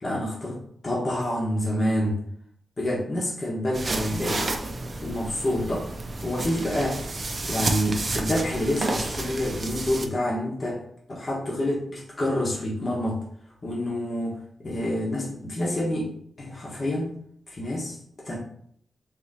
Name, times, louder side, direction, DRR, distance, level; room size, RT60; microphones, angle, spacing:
voice 1, 0.0-2.2 2.8-4.5 5.0-5.9 6.2-7.0 7.4-10.8 11.1-13.2 13.6-16.1 16.4-17.2 17.5-18.0 18.2-18.4, left 1 dB, 35° left, -4 dB, 1.1 m, -27 dB
sound 1, 3.7-10.1, right 2 dB, 35° right, 0.5 m, -31 dB
3.7 x 2.9 x 4.1 m, 0.64 s
wide cardioid pair, 135°, 0 cm